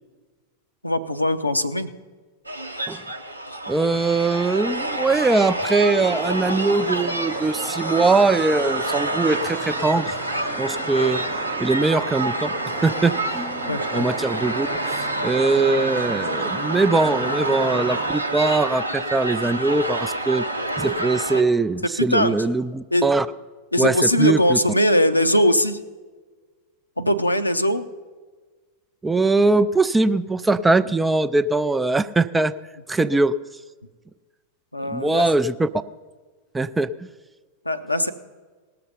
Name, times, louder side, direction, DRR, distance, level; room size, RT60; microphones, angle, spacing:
voice 1, 0.8-1.9 13.7-14.1 22.1-22.4 22.9-23.1 23.7-25.8 27.0-27.8 34.7-35.2 37.6-38.1, equal, 85° left, 9 dB, 0.6 m, -20 dB
sound 1, 2.4-21.4, right 1 dB, 85° right, 0.8 m, -28 dB
voice 2, 3.7-10.1 10.6-11.2 11.6-12.5 12.8-14.7 15.2-20.5 20.8-23.3 23.8-24.6 29.0-32.5 32.9-33.3 34.9-35.7 36.5-37.1, right 3 dB, 10° right, 13 dB, 0.4 m, -21 dB
sound 2, 6.0-18.1, right 6 dB, 30° right, 1.0 m, -37 dB
18.5 x 6.8 x 5.6 m, 1.4 s
figure-of-eight pair, 90°, 0 cm